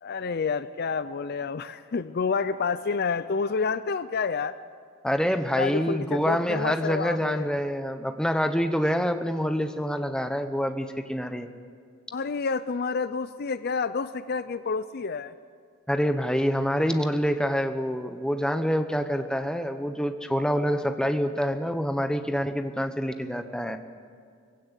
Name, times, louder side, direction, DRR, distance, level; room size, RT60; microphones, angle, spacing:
voice 1, 0.0-4.6 5.6-7.5 12.1-15.3, left 5 dB, 45° left, 14 dB, 0.5 m, -29 dB
voice 2, 5.0-11.5 15.9-23.8, equal, 5° left, 8 dB, 0.9 m, -26 dB
21.5 x 16.0 x 8.3 m, 2.2 s
head